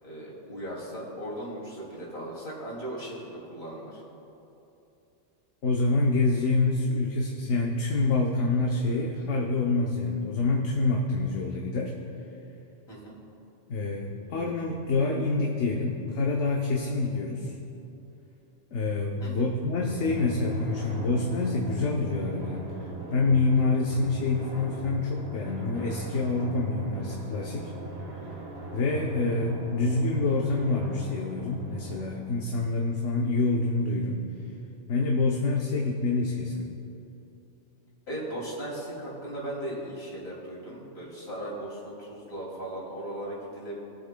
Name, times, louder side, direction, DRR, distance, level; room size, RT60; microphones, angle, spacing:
voice 1, 0.0-4.0 12.9-13.2 19.2-19.5 38.1-43.8, right 1 dB, 55° left, -5 dB, 3.0 m, -37 dB
voice 2, 5.6-11.9 13.7-17.5 18.7-22.7 23.1-27.7 28.7-34.2 34.9-36.7, left 3 dB, 75° left, -1 dB, 1.2 m, -27 dB
Drum, 19.9-32.9, right 3 dB, 55° right, 1.5 m, -39 dB
22.0 x 7.7 x 2.2 m, 2.9 s
omnidirectional pair, 1.3 m